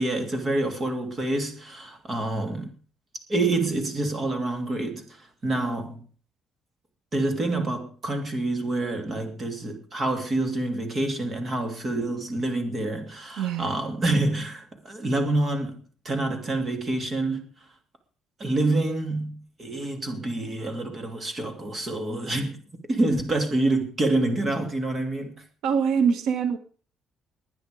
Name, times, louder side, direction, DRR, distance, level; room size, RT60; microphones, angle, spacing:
voice 1, 0.0-2.7 3.3-6.0 7.1-17.5 18.4-22.6 22.9-25.3, right 2 dB, 25° right, 2.8 m, -27 dB
voice 2, 13.4-13.8 25.6-26.6, right 6 dB, 80° right, 1.7 m, -24 dB
21.0 x 9.3 x 5.1 m
cardioid pair, 165°, 0 cm